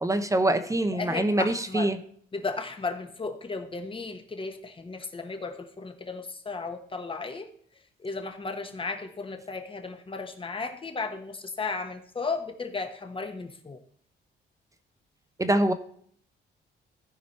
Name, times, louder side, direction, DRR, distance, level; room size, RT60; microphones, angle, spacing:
voice 1, 0.0-2.0 15.4-15.7, right 1 dB, 15° right, 9 dB, 0.8 m, -24 dB
voice 2, 0.8-1.9 2.3-7.5 8.0-13.8, left 4 dB, 25° left, 6 dB, 1.2 m, -35 dB
15.0 x 5.0 x 4.3 m, 0.62 s
cardioid pair, 90°, 20 cm